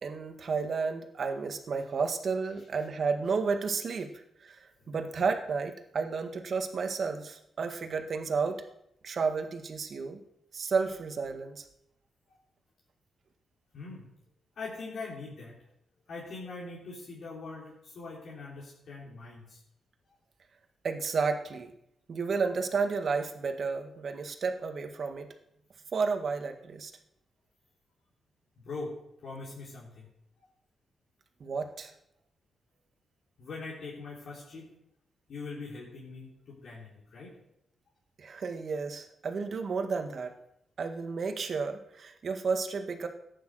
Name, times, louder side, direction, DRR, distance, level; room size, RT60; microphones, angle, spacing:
voice 1, 0.0-4.1 4.4-8.6 9.0-10.2 10.5-11.7 20.8-21.7 22.1-25.3 25.9-26.9 31.4-31.9 38.2-40.3 40.8-43.1, right 5 dB, 55° right, 6 dB, 1.8 m, -32 dB
voice 2, 13.7-14.1 14.6-15.6 16.1-19.6 20.1-20.2 28.6-30.1 33.4-34.7 35.3-37.4, left 3 dB, 70° left, -5 dB, 3.8 m, -42 dB
14.0 x 10.5 x 6.4 m, 0.79 s
cardioid pair, 80°, 0 cm